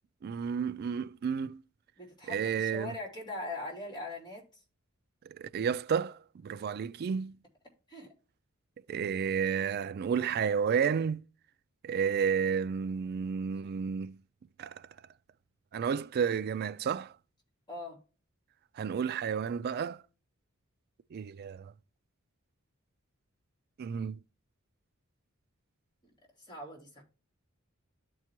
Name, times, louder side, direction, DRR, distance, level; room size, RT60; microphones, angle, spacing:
voice 1, 0.2-1.6 2.3-2.9 5.3-7.4 8.9-11.2 11.8-14.2 14.6-14.9 15.7-17.1 18.7-20.0 21.1-21.7 23.8-24.2, right 7 dB, 50° right, 0.3 m, -31 dB
voice 2, 2.0-4.4 6.6-6.7 7.9-8.1 17.7-18.0 26.4-27.0, left 2 dB, 20° left, 2.8 m, -41 dB
13.0 x 4.7 x 2.9 m
head